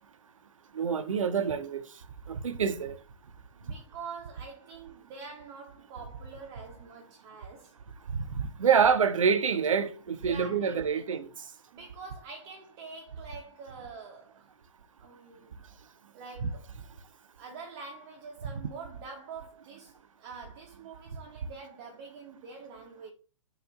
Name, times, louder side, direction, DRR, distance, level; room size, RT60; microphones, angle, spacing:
voice 1, 0.7-1.8 2.3-2.9 8.1-11.3 16.4-16.5, right 6 dB, 75° right, 0.5 m, -26 dB
voice 2, 3.5-7.8 10.2-11.2 11.7-14.5 15.0-15.6 16.1-16.8 17.4-23.1, right 4 dB, 35° right, 0.6 m, -45 dB
4.5 x 2.4 x 2.3 m
figure-of-eight pair, 120°, 17 cm